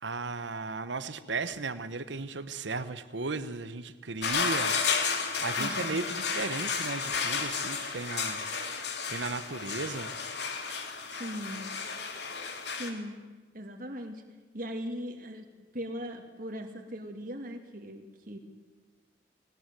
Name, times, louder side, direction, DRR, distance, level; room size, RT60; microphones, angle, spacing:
voice 1, 0.0-4.7 5.4-8.4 9.1-10.1, right 3 dB, 80° right, 13 dB, 1.1 m, -35 dB
sound 1, 4.2-12.9, left 5 dB, 65° left, 2.7 m, -32 dB
voice 2, 5.6-6.1 11.1-11.7 12.8-13.2 13.5-14.2 14.5-15.5 15.7-18.4, equal, 45° right, 4 dB, 2.5 m, -39 dB
20.0 x 18.5 x 9.2 m, 1.2 s
head